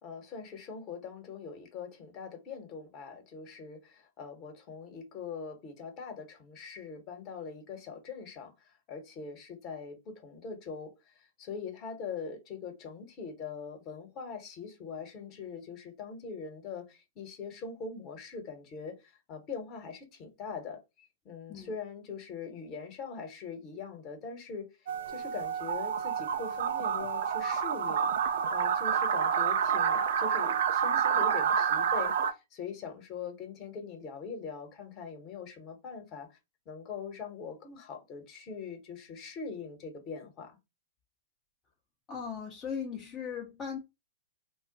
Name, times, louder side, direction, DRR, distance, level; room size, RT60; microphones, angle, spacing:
voice 1, 0.0-24.7 25.1-28.1 28.5-36.4 36.7-40.6, left 5 dB, 35° left, 1.0 m, -42 dB
sound 1, 24.9-32.3, right 7 dB, 65° right, 0.4 m, -28 dB
voice 2, 42.1-43.8, left 7 dB, 20° left, 0.6 m, -38 dB
2.2 x 2.1 x 3.8 m
hypercardioid pair, 125°, 0 cm